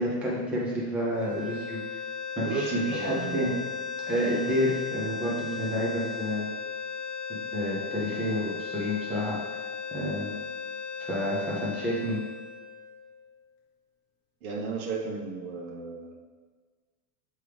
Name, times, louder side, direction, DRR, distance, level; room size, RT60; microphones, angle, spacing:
voice 1, 0.0-1.8 2.4-3.5 4.0-6.5 7.3-9.4 9.9-10.4 11.1-12.2, equal, 5° right, -7 dB, 0.6 m, -29 dB
sound 1, 1.1-13.3, left 5 dB, 25° left, 1.2 m, -36 dB
voice 2, 2.4-3.5 14.4-16.2, right 4 dB, 70° right, -1 dB, 1.4 m, -34 dB
6.6 x 4.6 x 3.4 m, 1.4 s
supercardioid pair, 170°, 44 cm